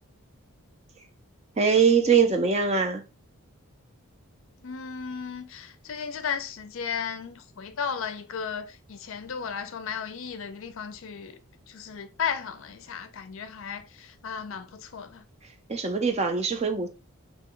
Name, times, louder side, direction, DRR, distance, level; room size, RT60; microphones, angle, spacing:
voice 1, 1.6-3.0 15.7-16.9, right 5 dB, 30° right, 0.4 m, -22 dB
voice 2, 4.6-11.4 11.7-15.2, left 7 dB, 60° left, 0.4 m, -35 dB
3.0 x 2.2 x 3.6 m
head